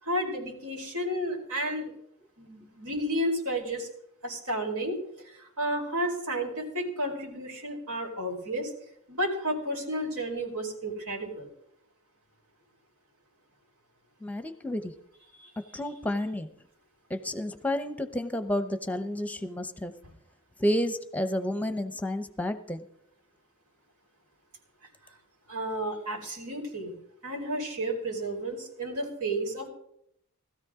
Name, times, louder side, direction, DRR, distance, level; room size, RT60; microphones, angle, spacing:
voice 1, 0.0-1.9 2.4-3.9 4.2-5.0 5.2-8.7 9.1-11.5 15.4-15.5 25.5-26.9 27.2-29.7, right 1 dB, 80° right, 0 dB, 4.5 m, -32 dB
voice 2, 14.2-14.9 15.7-16.5 17.1-19.9 20.6-22.8, left 1 dB, 5° left, 11 dB, 0.8 m, -30 dB
19.5 x 13.5 x 3.7 m, 0.74 s
head